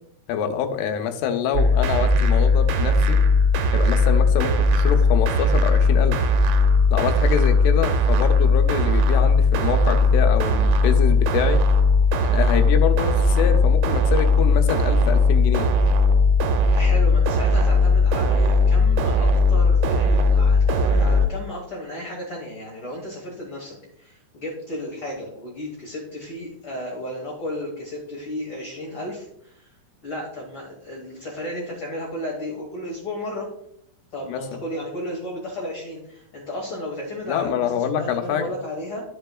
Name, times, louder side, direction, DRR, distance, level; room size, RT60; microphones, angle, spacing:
voice 1, 0.3-3.2 3.7-6.2 6.9-11.6 12.2-15.7 34.3-34.6 37.3-38.5, left 8 dB, 85° left, 7 dB, 2.7 m, -26 dB
sound 1, 1.5-21.3, left 2 dB, 80° right, 2.5 m, -18 dB
voice 2, 16.7-29.7 30.0-33.5 34.1-39.0, left 1 dB, 65° left, -3 dB, 1.3 m, -33 dB
12.0 x 4.8 x 2.2 m, 0.71 s
omnidirectional pair, 4.7 m